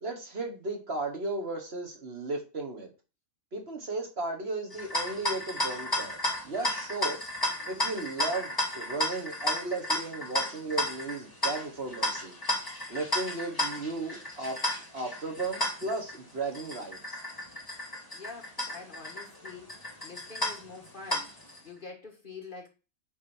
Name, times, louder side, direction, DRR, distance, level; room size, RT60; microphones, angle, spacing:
voice 1, 0.0-2.9 3.5-6.2 6.4-7.2 7.6-12.3 12.9-14.6 14.9-17.2, right 3 dB, 45° right, 1.7 m, -35 dB
sound 1, 4.7-21.6, left 1 dB, 15° left, 2.2 m, -33 dB
voice 2, 18.1-19.8 20.0-21.3 21.6-22.7, left 4 dB, 40° left, 1.6 m, -45 dB
8.7 x 4.8 x 4.4 m
omnidirectional pair, 1.5 m